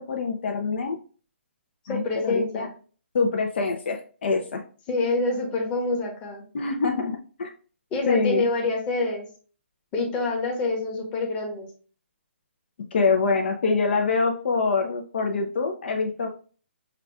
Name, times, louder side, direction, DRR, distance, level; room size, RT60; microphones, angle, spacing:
voice 1, 0.1-1.0 1.9-2.7 3.1-4.6 6.5-7.5 8.1-8.4 12.9-16.3, left 4 dB, 60° left, 2 dB, 0.6 m, -25 dB
voice 2, 1.8-2.7 4.9-6.4 7.9-9.3 9.9-11.7, left 3 dB, 20° left, 0 dB, 1.0 m, -26 dB
5.7 x 2.3 x 2.3 m, 0.40 s
hypercardioid pair, 145°, 7 cm